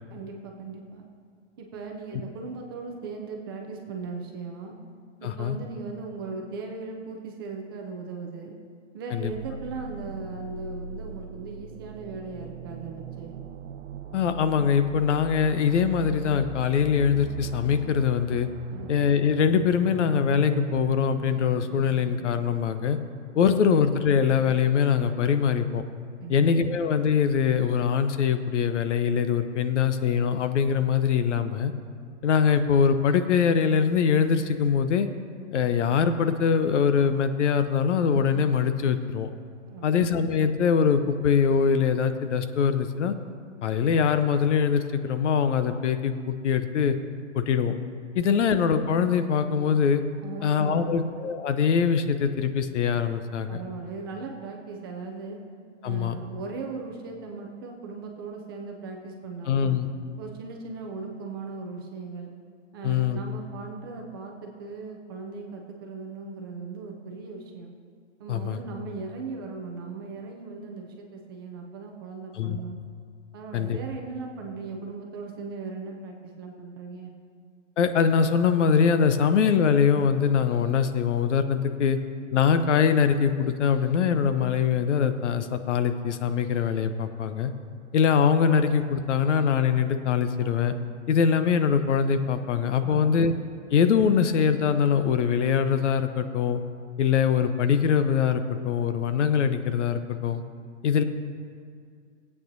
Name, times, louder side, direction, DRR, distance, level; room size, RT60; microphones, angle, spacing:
voice 1, 0.1-1.1 1.6-4.8 5.2-8.6 8.9-13.3 18.7-18.9 26.2-26.7 39.6-40.0 50.2-51.0 53.5-55.4 55.8-59.8 60.2-62.3 62.7-67.7 68.2-72.8 73.3-77.1 92.8-93.2, right 4 dB, 20° right, 1 dB, 0.4 m, -38 dB
voice 2, 5.2-5.6 9.1-9.3 14.1-18.5 18.9-23.0 23.3-25.8 26.3-31.7 32.2-35.1 35.5-39.3 39.8-43.1 43.6-47.0 47.3-47.8 48.1-50.0 50.4-53.6 55.8-56.2 59.5-59.9 62.8-63.2 68.3-68.6 72.4-72.6 73.5-73.8 77.8-82.0 82.3-87.5 87.9-90.7 91.1-93.3 93.7-96.6 97.0-100.4 100.8-101.0, left 7 dB, 70° left, 10 dB, 0.8 m, -23 dB
sound 1, 9.2-23.0, right 8 dB, 65° right, 0.6 m, -40 dB
20.0 x 8.4 x 2.7 m, 2.1 s
hypercardioid pair, 155°, 37 cm